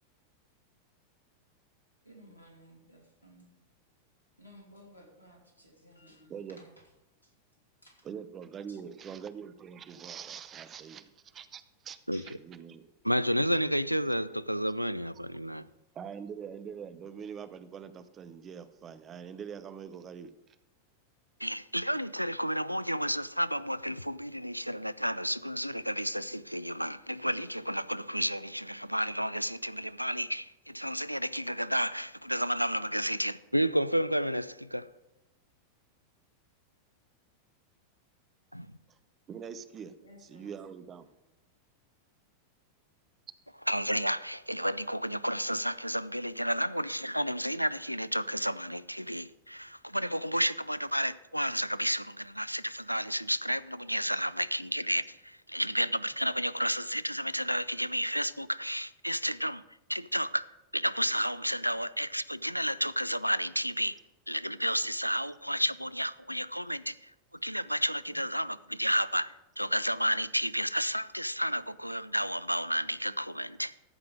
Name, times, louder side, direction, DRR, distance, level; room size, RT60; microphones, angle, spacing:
voice 1, 2.0-3.6 4.4-6.8 7.2-7.3 7.8-8.0 8.7-9.0 12.1-12.2 40.0-40.5 41.0-41.1, equal, 85° left, 0 dB, 2.6 m, -56 dB
voice 2, 8.0-12.0 12.3-12.8 15.9-20.3 38.9-39.0 39.3-39.9 40.3-41.1, right 7 dB, 25° right, 13 dB, 0.7 m, -43 dB
voice 3, 13.0-15.7 21.4-34.9 38.5-38.7 43.7-59.6 59.9-64.0 64.3-67.1 67.4-73.7, equal, 90° right, 18 dB, 0.3 m, -31 dB
14.0 x 5.8 x 5.0 m, 0.94 s
figure-of-eight pair, 90°, 0 cm